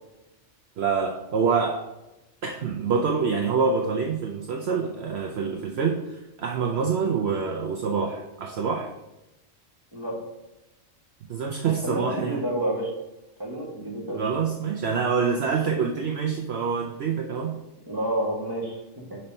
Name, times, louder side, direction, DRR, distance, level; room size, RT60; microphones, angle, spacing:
voice 1, 0.8-1.8 2.4-8.9 11.3-12.4 14.1-17.6, right 5 dB, 60° right, 1 dB, 0.8 m, -26 dB
voice 2, 11.8-12.9 13.4-14.2 17.9-19.2, right 1 dB, 20° right, -2 dB, 1.5 m, -29 dB
5.4 x 4.3 x 5.3 m, 0.97 s
omnidirectional pair, 1.3 m